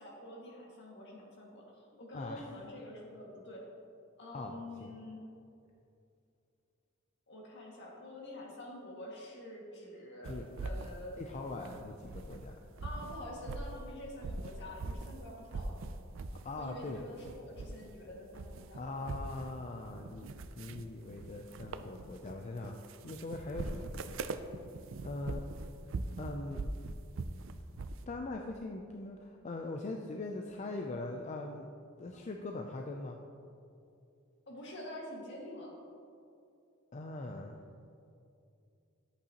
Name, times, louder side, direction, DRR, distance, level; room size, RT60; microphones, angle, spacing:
voice 1, 0.0-3.7 4.2-5.2 7.3-11.2 12.8-15.9 16.5-19.1 32.1-32.2 34.5-35.7, left 1 dB, 60° left, -3 dB, 2.0 m, -47 dB
voice 2, 2.1-2.4 4.3-4.5 4.8-4.9 10.3-10.5 11.2-12.5 16.4-17.0 18.8-20.3 20.6-24.2 25.0-25.4 26.2-26.7 28.1-31.7 32.0-33.2 36.9-37.6, left 2 dB, 35° left, 2 dB, 0.5 m, -41 dB
sound 1, 10.2-12.5 12.7-15.2 15.5-16.5 16.8-18.0 18.3-28.0, right 3 dB, 70° right, 0.4 m, -42 dB
11.0 x 8.4 x 2.9 m, 2.6 s
head